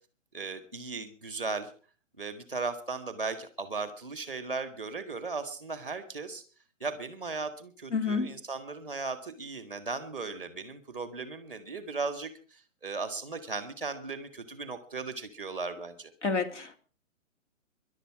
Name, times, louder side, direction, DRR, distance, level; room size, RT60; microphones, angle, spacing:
voice 1, 0.3-1.7 2.2-6.4 6.8-16.1, right 4 dB, 5° left, 1.1 m, -37 dB
voice 2, 7.9-8.3 16.2-16.8, left 4 dB, 65° left, 3.1 m, -29 dB
21.0 x 11.5 x 4.7 m
hypercardioid pair, 180°, 39 cm